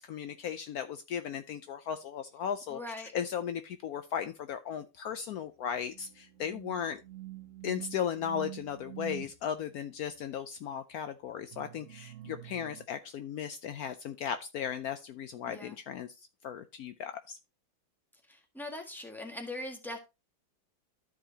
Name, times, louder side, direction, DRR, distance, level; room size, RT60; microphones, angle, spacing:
voice 1, 0.0-2.8 3.1-7.0 7.6-16.1 16.4-17.4, left 8 dB, 85° left, 0.8 m, -36 dB
voice 2, 2.7-3.1 15.5-15.8 18.3-20.0, left 1 dB, ahead, 1.4 m, -41 dB
sound 1, 5.8-9.3 11.5-12.8, right 17 dB, 50° right, 1.0 m, -46 dB
13.0 x 4.9 x 2.8 m
omnidirectional pair, 2.2 m